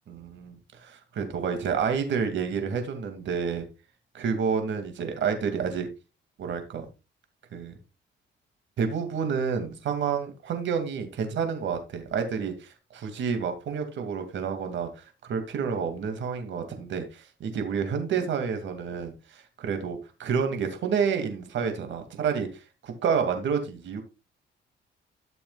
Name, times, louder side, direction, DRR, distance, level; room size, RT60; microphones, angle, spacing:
voice 1, 0.1-3.7 4.1-5.9 6.4-6.9 7.5-7.7 8.8-22.5 22.8-24.0, right 6 dB, 70° right, 6 dB, 2.4 m, -29 dB
13.0 x 7.0 x 2.4 m, 0.28 s
cardioid pair, 90°, 20 cm